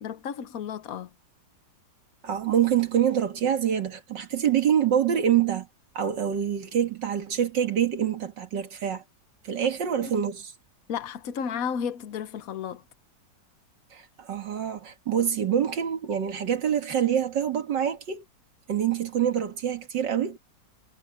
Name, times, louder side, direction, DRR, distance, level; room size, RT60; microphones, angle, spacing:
voice 1, 0.0-1.1 10.0-10.1 10.9-12.8, left 7 dB, 55° left, 1.3 m, -33 dB
voice 2, 2.2-5.7 6.0-9.0 9.4-10.5 13.9-18.2 18.7-20.4, right 9 dB, 75° right, 2.3 m, -26 dB
omnidirectional pair, 2.0 m